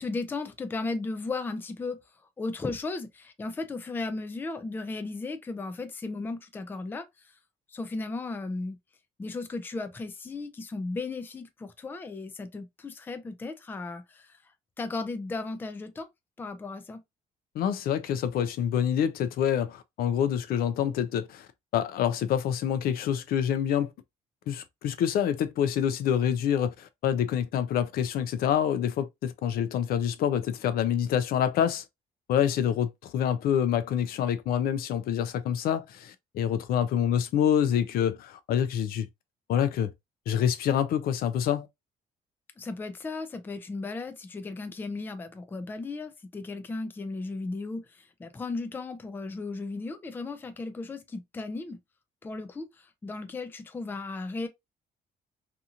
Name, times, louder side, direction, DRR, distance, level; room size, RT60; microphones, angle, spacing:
voice 1, 0.0-2.0 2.4-7.1 7.7-8.8 9.2-14.4 14.8-16.1 16.4-17.0 42.6-51.8 52.2-54.5, left 3 dB, 15° left, 0.4 m, -35 dB
voice 2, 17.5-21.5 21.7-23.9 24.5-31.8 32.3-39.1 39.5-39.9 40.3-41.7, left 9 dB, 70° left, 0.5 m, -26 dB
2.8 x 2.5 x 2.4 m
cardioid pair, 155°, 16 cm